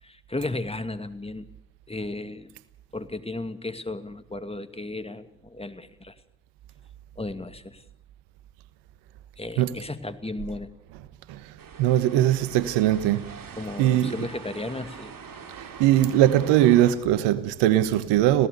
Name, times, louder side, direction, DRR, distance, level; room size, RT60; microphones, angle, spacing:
voice 1, 0.0-1.5 1.9-2.5 2.9-6.1 7.2-7.8 9.4-10.7 13.6-15.1, left 2 dB, 15° left, 2.1 m, -34 dB
sound 1, 11.6-16.9, right 6 dB, 50° right, 3.2 m, -43 dB
voice 2, 11.8-13.3 13.8-14.3 15.8-18.5, right 12 dB, 80° right, 1.2 m, -20 dB
27.0 x 17.0 x 6.7 m
hypercardioid pair, 50°, 42 cm